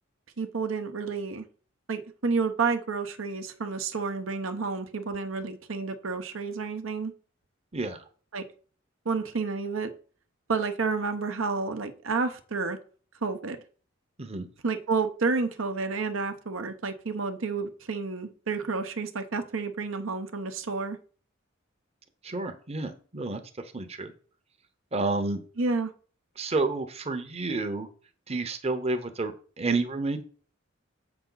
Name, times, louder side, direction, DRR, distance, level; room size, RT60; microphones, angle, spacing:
voice 1, 0.4-1.4 1.9-7.1 8.3-8.4 9.0-9.9 10.5-12.8 13.2-13.6 14.6-21.0 25.6-25.9, right 4 dB, 85° right, 7 dB, 0.9 m, -30 dB
voice 2, 22.2-23.4 23.7-24.1 24.9-25.4 26.4-27.9 28.3-30.2, right 3 dB, 30° right, 7 dB, 0.8 m, -30 dB
7.5 x 5.8 x 3.9 m, 0.41 s
head